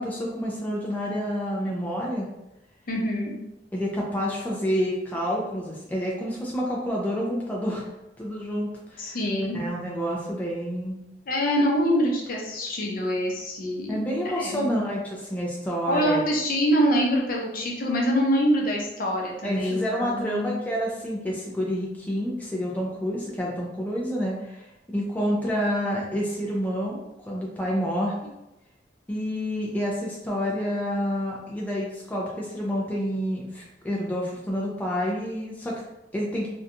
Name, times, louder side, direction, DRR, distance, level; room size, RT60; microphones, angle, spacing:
voice 1, 0.0-2.3 3.7-7.9 8.2-9.2 9.5-11.0 13.9-16.2 19.4-27.0 27.3-28.3 29.1-35.8 36.1-36.5, equal, 10° left, -4 dB, 0.4 m, -28 dB
voice 2, 2.9-3.3 9.0-9.6 11.3-14.1 14.4-14.8 15.9-20.5, equal, 55° left, -2 dB, 0.6 m, -25 dB
2.7 x 2.2 x 2.5 m, 0.92 s
head